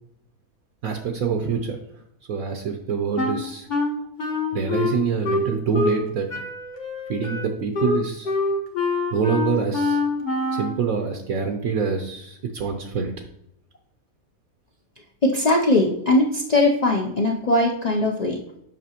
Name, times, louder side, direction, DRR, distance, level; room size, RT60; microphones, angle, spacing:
voice 1, 0.8-1.8 2.3-3.7 4.5-6.3 7.1-8.3 9.1-10.0 10.5-13.1, right 6 dB, 70° right, 4 dB, 1.1 m, -25 dB
Wind instrument woodwind instrument, 3.2-6.0 6.3-10.8, left 3 dB, 35° left, 0.9 m, -25 dB
voice 2, 15.2-18.4, left 2 dB, 65° left, -1 dB, 0.4 m, -20 dB
7.4 x 5.6 x 2.9 m, 0.77 s
omnidirectional pair, 1.6 m